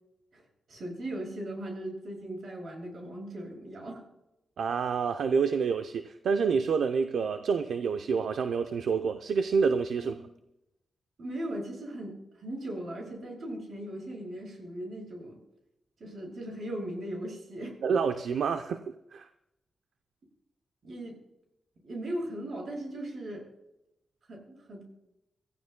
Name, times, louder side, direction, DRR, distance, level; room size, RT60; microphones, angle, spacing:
voice 1, 0.7-4.0 10.0-10.3 11.2-15.4 16.0-17.8 20.8-21.2 21.8-23.5 24.3-24.9, right 1 dB, 65° right, 0 dB, 6.7 m, -38 dB
voice 2, 4.6-10.3 17.8-18.8 19.1-19.3, right 5 dB, 85° right, 7 dB, 0.6 m, -28 dB
26.0 x 15.0 x 2.2 m, 0.88 s
cardioid pair, 80°, 0 cm